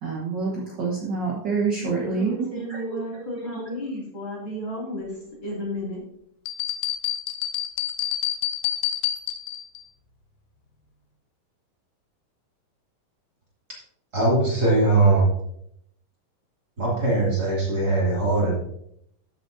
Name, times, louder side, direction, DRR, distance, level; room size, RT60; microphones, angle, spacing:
voice 1, 0.0-3.0, right 4 dB, 60° right, -4 dB, 1.1 m, -27 dB
voice 2, 1.8-6.0, equal, 35° left, -4 dB, 3.3 m, -33 dB
sound 1, 6.5-9.8, left 12 dB, 90° left, 2.6 m, -28 dB
voice 3, 14.1-15.3 16.8-18.6, right 2 dB, 30° right, -5 dB, 2.7 m, -20 dB
14.0 x 7.4 x 2.7 m, 0.72 s
omnidirectional pair, 4.0 m